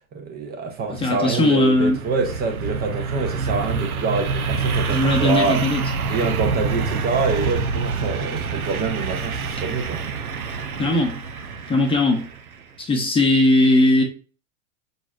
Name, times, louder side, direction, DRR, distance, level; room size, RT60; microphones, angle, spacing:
voice 1, 0.1-5.6 6.0-10.0, right 4 dB, 25° right, 0.6 m, -26 dB
voice 2, 0.9-2.0 4.9-5.8 10.8-11.2 11.7-12.3 12.8-14.0, left 2 dB, 15° left, 0.7 m, -18 dB
sound 1, 0.9-12.6, right 4 dB, 85° right, 0.7 m, -27 dB
4.9 x 4.1 x 2.4 m
figure-of-eight pair, 95°, 42 cm